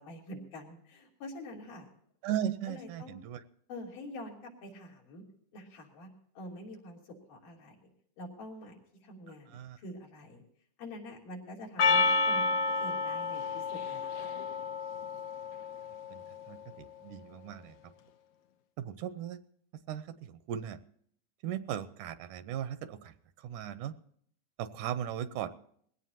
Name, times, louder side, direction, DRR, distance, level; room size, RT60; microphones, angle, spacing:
voice 1, 0.0-1.9 2.4-3.2 3.7-5.2 5.5-6.1 6.3-7.8 8.2-10.4 10.8-14.3, left 1 dB, 85° left, -2 dB, 4.9 m, -46 dB
voice 2, 2.2-3.4 9.5-9.8 16.1-17.8 18.8-19.4 19.9-20.8 21.4-23.1 23.4-24.0 24.6-25.5, right 10 dB, 80° right, 12 dB, 2.2 m, -37 dB
Percussion, 11.8-16.3, left 3 dB, 70° left, 2.0 m, -30 dB
20.5 x 17.0 x 2.8 m, 0.65 s
omnidirectional pair, 3.6 m